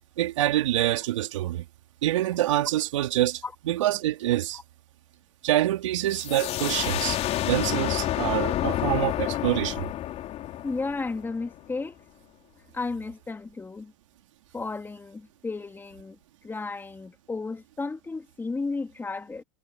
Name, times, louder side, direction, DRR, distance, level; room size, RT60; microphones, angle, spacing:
voice 1, 0.2-1.6 2.0-4.6 5.4-7.2 7.4-9.9, right 14 dB, 75° right, 3.5 m, -26 dB
sound 1, 6.1-11.6, left 13 dB, 40° left, 3.8 m, -29 dB
voice 2, 10.6-12.0 12.7-13.9 14.5-16.2 16.4-19.4, left 3 dB, 15° left, 3.0 m, -33 dB
hypercardioid pair, 100°, 16 cm